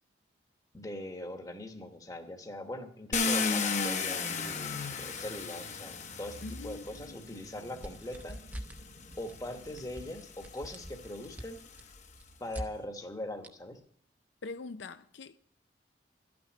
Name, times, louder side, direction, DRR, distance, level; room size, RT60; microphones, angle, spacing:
voice 1, 0.7-8.4 9.2-11.6 12.4-13.8, left 1 dB, 20° left, 1.1 m, -41 dB
Car, 3.1-7.2 8.2-8.3 8.8-12.1, left 4 dB, 40° left, 0.9 m, -35 dB
sound 1, 4.4-10.1, right 1 dB, 75° right, 1.2 m, -56 dB
voice 2, 6.4-7.2 14.4-15.4, left 3 dB, 80° left, 0.5 m, -43 dB
sound 2, 7.8-8.8 9.1-9.4 9.7-12.7 13.4-13.5, equal, 10° right, 0.7 m, -43 dB
12.5 x 6.1 x 9.6 m
head